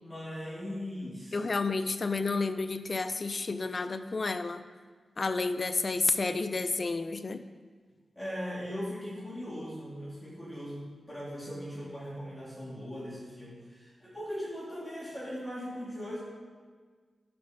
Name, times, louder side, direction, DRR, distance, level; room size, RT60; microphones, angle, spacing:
voice 1, 0.0-1.4 8.1-16.2, equal, 15° left, -7 dB, 3.0 m, -39 dB
voice 2, 1.3-4.6 5.2-7.4, left 3 dB, 50° left, 10 dB, 0.6 m, -30 dB
11.0 x 5.3 x 5.2 m, 1.5 s
cardioid pair, 65°, 0 cm